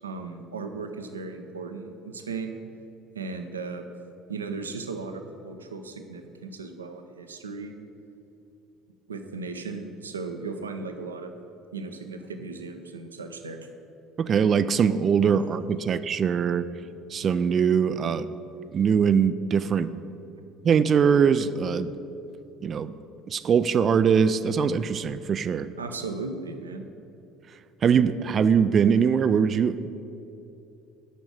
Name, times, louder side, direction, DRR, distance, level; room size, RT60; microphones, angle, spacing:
voice 1, 0.0-2.6 3.1-3.8 4.3-7.7 9.1-11.3 11.7-13.6 25.8-26.9, right 4 dB, 80° right, 6 dB, 0.6 m, -36 dB
voice 2, 14.2-16.6 17.1-18.3 18.7-19.9 20.6-21.9 22.6-22.9 23.3-25.7 27.8-29.9, right 7 dB, 40° right, 14 dB, 0.4 m, -22 dB
8.4 x 6.1 x 7.5 m, 2.8 s
figure-of-eight pair, 60°, 0 cm